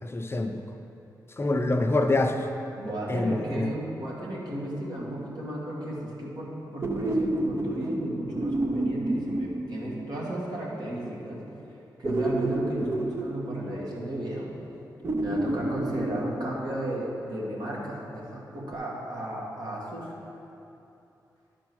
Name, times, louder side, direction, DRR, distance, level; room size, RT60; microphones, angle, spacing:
voice 1, 0.0-0.6 1.4-2.5 3.1-3.7, left 2 dB, 35° left, 5 dB, 0.6 m, -26 dB
voice 2, 2.8-11.4 12.0-14.5 15.2-20.1, right 1 dB, 70° right, -4 dB, 2.0 m, -34 dB
sound 1, 5.0-5.7 6.8-10.4 12.0-14.3 15.0-17.0 18.7-18.8, right 1 dB, 35° right, 0.6 m, -30 dB
10.5 x 4.5 x 6.2 m, 2.8 s
cardioid pair, 75°, 8 cm